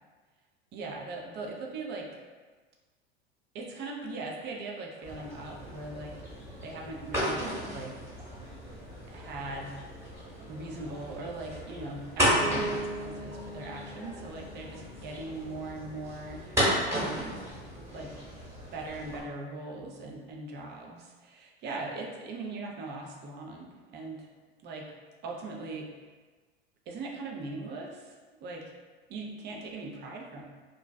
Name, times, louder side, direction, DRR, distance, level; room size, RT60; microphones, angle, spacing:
voice 1, 0.7-2.1 3.5-6.2 6.6-7.4 7.7-7.9 9.1-9.7 10.5-17.4 17.9-18.2 18.7-24.3 24.6-24.8 25.2-25.9 26.9-28.7 29.1-30.4, right 2 dB, 35° right, 0 dB, 0.5 m, -40 dB
sound 1, 5.0-19.2, equal, 10° right, 1.0 m, -34 dB
Bass guitar, 12.4-16.3, right 2 dB, 35° left, 0.7 m, -41 dB
2.5 x 2.2 x 2.2 m, 1.4 s
hypercardioid pair, 85°, 31 cm